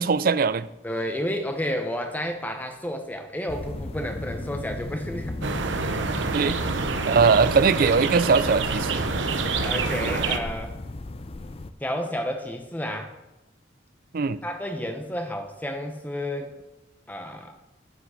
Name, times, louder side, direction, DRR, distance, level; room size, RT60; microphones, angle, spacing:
voice 1, 0.0-0.7 6.3-6.6 7.1-9.1 14.1-14.4, right 5 dB, 50° right, 16 dB, 0.4 m, -21 dB
voice 2, 0.8-5.4 9.6-10.8 11.8-13.1 14.4-16.5 17.1-17.5, equal, 10° left, 4 dB, 0.8 m, -31 dB
sound 1, 3.5-11.7, left 2 dB, 30° left, 0.4 m, -36 dB
sound 2, 5.4-10.4, right 4 dB, 75° right, 0.9 m, -27 dB
9.7 x 6.0 x 6.4 m, 0.97 s
head